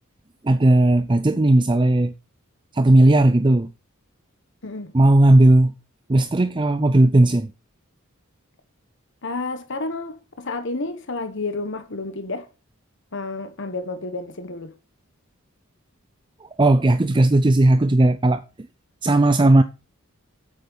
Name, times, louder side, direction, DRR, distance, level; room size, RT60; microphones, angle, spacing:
voice 1, 0.4-2.1 2.7-3.7 4.9-5.7 6.1-7.5 16.4-18.7 19.0-19.6, right 1 dB, 20° right, 0.5 m, -16 dB
voice 2, 4.6-4.9 9.2-12.5 13.1-14.7, left 3 dB, 60° left, 1.2 m, -30 dB
8.6 x 8.2 x 4.0 m
head